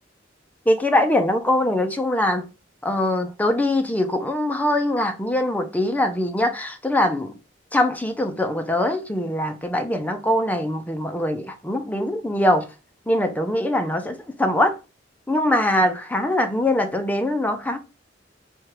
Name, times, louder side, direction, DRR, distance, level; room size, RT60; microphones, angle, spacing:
voice 1, 0.7-2.5 2.8-7.3 7.7-12.7 13.1-14.7 15.3-17.8, left 1 dB, 10° left, 0.5 m, -22 dB
4.4 x 2.3 x 4.7 m
head